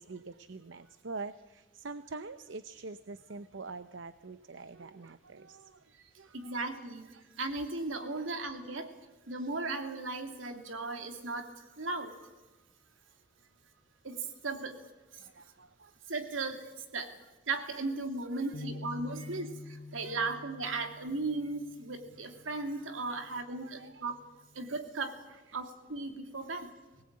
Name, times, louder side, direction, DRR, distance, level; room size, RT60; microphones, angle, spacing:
voice 1, 0.0-5.8 6.2-6.7 8.1-8.3 15.2-16.0 17.7-17.9 18.2-18.7 19.4-19.5 20.0-20.2 23.1-24.1 25.5-25.6, right 3 dB, 70° right, 12 dB, 0.7 m, -46 dB
voice 2, 6.3-8.9 9.3-12.3 14.0-14.8 15.1-15.2 16.1-17.2 17.5-24.2 24.5-25.2 25.5-26.7, right 3 dB, 90° right, 5 dB, 2.7 m, -36 dB
sound 1, 18.5-22.8 23.3-23.5 24.3-24.8, left 3 dB, 75° left, 1.2 m, -47 dB
22.0 x 19.0 x 8.8 m, 1.1 s
head